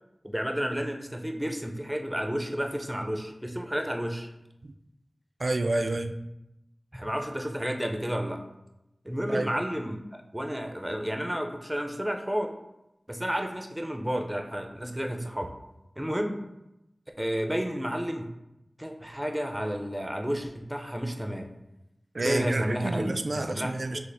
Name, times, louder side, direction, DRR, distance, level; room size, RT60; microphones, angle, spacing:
voice 1, 0.2-4.3 6.9-8.4 9.0-10.0 10.3-12.5 13.1-15.5 16.0-16.4 17.2-18.3 18.8-21.5 22.2-23.7, equal, 10° right, 4 dB, 0.5 m, -31 dB
voice 2, 5.4-6.2 9.3-9.6 22.1-24.0, right 2 dB, 65° right, 7 dB, 0.3 m, -29 dB
6.0 x 2.0 x 3.3 m, 0.89 s
wide cardioid pair, 55°, 0 cm